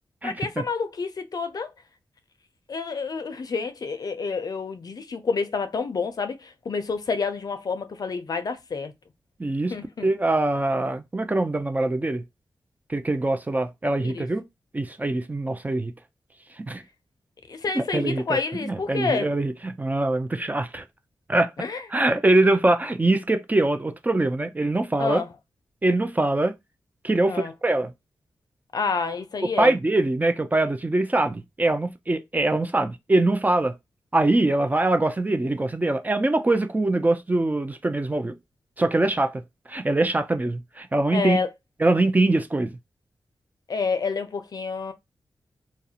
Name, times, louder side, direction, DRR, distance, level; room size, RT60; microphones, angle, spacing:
voice 1, 0.2-1.7 2.7-8.9 9.7-10.1 14.0-14.3 17.5-19.3 21.6-21.8 25.0-25.3 27.3-27.5 28.7-29.8 41.1-41.5 43.7-44.9, left 4 dB, 55° left, 0.5 m, -29 dB
voice 2, 9.4-9.7 10.0-12.2 12.9-14.4 14.7-15.9 16.6-16.8 17.7-20.8 21.3-21.5 21.9-25.2 25.8-26.5 27.0-27.9 29.6-33.7 34.1-38.3 38.8-39.4 39.7-41.4 41.8-42.7, right 2 dB, 20° right, 0.4 m, -23 dB
2.4 x 2.0 x 2.7 m
cardioid pair, 70°, 8 cm